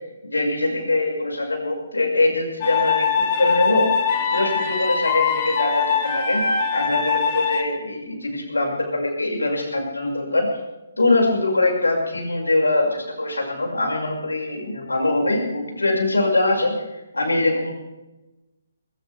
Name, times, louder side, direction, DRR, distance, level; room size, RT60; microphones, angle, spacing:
voice 1, 0.2-3.9 4.3-10.5 11.0-16.7 17.1-17.7, left 2 dB, 85° left, 0 dB, 6.3 m, -22 dB
sound 1, 2.6-7.6, left 6 dB, 40° left, 3.5 m, -22 dB
21.0 x 19.0 x 3.6 m, 1.0 s
figure-of-eight pair, 140°, 0 cm